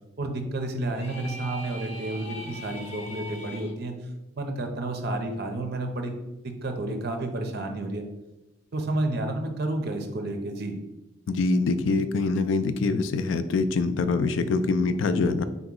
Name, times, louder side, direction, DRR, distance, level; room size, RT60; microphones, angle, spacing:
voice 1, 0.2-4.0 4.3-6.1 6.4-8.0 8.7-10.8, right 2 dB, 55° right, 5 dB, 0.6 m, -30 dB
sound 1, 0.9-3.7, left 1 dB, 35° left, 0.6 m, -40 dB
voice 2, 11.3-15.4, left 3 dB, 75° left, 11 dB, 0.3 m, -24 dB
3.8 x 2.9 x 3.7 m, 1.0 s
head